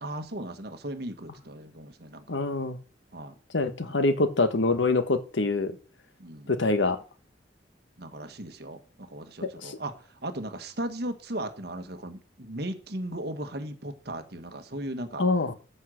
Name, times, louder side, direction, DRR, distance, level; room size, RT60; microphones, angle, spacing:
voice 1, 0.0-2.4 3.1-3.3 3.8-4.0 6.2-6.5 8.0-9.9 10.2-15.2, right 1 dB, 60° right, 1.5 m, -37 dB
voice 2, 2.3-2.8 3.5-5.8 6.5-7.0 9.4-9.8 15.2-15.5, left 3 dB, 80° left, 1.3 m, -25 dB
14.0 x 5.5 x 6.4 m
head